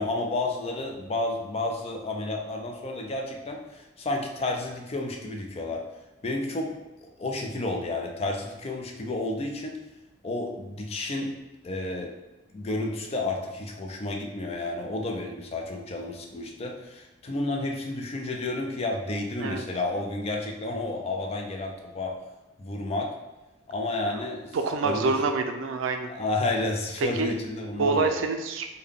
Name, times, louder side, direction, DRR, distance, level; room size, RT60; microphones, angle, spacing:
voice 1, 0.0-5.8 6.2-9.8 10.2-11.3 11.6-12.1 12.5-22.1 22.6-23.1 23.7-24.6 24.8-25.1 26.1-28.2, left 2 dB, 30° left, 2 dB, 0.4 m, -31 dB
voice 2, 24.5-26.1 27.2-27.3 27.8-28.7, right 3 dB, 80° right, 6 dB, 0.4 m, -26 dB
3.4 x 2.2 x 3.6 m, 1.1 s
head